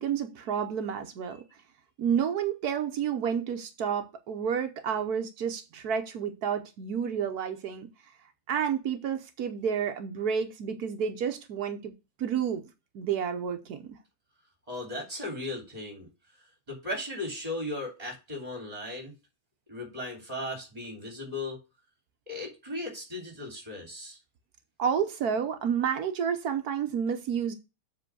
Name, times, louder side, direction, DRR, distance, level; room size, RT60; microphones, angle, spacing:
voice 1, 0.0-1.4 2.0-7.9 8.5-11.9 12.2-12.6 12.9-14.0 24.8-27.5, right 7 dB, 85° right, 6 dB, 1.4 m, -30 dB
voice 2, 14.7-16.1 16.7-19.1 19.7-21.6 22.3-24.2, left 1 dB, 25° right, 1 dB, 3.4 m, -36 dB
7.6 x 4.2 x 6.2 m, 0.27 s
omnidirectional pair, 1.6 m